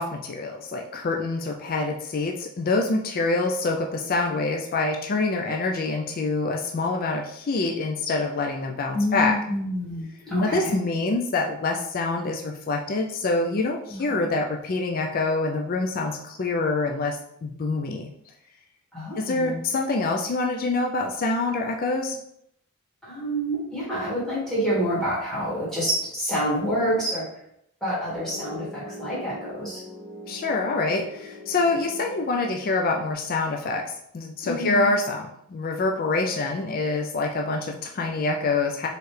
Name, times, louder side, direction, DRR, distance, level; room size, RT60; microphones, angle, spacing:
voice 1, 0.0-9.4 10.4-18.1 19.2-22.2 30.3-38.9, left 3 dB, 40° left, 2 dB, 0.4 m, -26 dB
voice 2, 8.9-10.7 13.9-14.2 18.9-19.6 23.0-27.2 27.8-29.8 34.4-34.9, equal, ahead, -9 dB, 1.8 m, -27 dB
Piano, 28.1-33.1, left 1 dB, 15° right, 1.6 m, -41 dB
4.5 x 3.2 x 3.2 m, 0.73 s
head